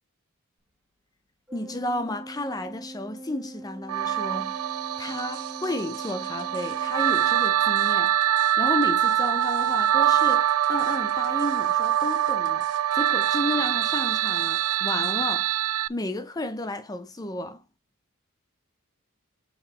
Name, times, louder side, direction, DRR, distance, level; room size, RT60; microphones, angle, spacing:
voice 1, 1.5-4.6 5.0-8.2 8.6-15.5 15.9-17.6, left 1 dB, 20° left, 0.6 m, -32 dB
Organ, 1.5-8.0, right 1 dB, 5° right, 1.7 m, -43 dB
sound 1, 3.9-15.9, right 11 dB, 80° right, 0.4 m, -24 dB
sound 2, 5.0-15.1, right 10 dB, 60° right, 1.1 m, -52 dB
6.9 x 5.4 x 3.1 m
head